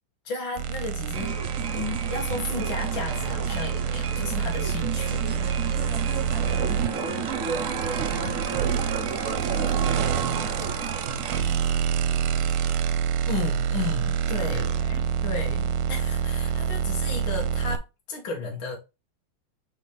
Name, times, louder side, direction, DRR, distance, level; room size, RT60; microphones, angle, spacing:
voice 1, 0.2-1.4 1.7-5.5 13.3-14.7 15.2-15.6 15.9-17.8 18.1-18.8, left 4 dB, 65° left, 2.4 m, -33 dB
sound 1, 0.6-17.8, right 8 dB, 90° right, 1.7 m, -27 dB
sound 2, 1.1-11.4, right 5 dB, 45° right, 1.2 m, -32 dB
voice 2, 5.8-13.0 14.5-15.1 15.4-15.5, right 2 dB, 5° right, 2.8 m, -47 dB
7.7 x 4.6 x 3.4 m
omnidirectional pair, 2.4 m